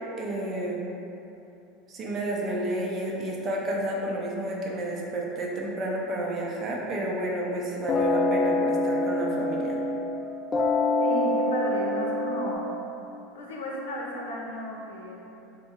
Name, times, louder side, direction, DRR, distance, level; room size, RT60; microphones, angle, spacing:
voice 1, 0.2-0.9 1.9-9.8, right 1 dB, 35° right, -2 dB, 0.6 m, -30 dB
sound 1, 7.9-10.2 10.5-12.6, left 2 dB, 25° left, 0.3 m, -25 dB
voice 2, 11.0-12.7 13.3-15.2, equal, 65° left, -3 dB, 0.6 m, -34 dB
3.5 x 2.2 x 4.3 m, 2.9 s
figure-of-eight pair, 75°, 0 cm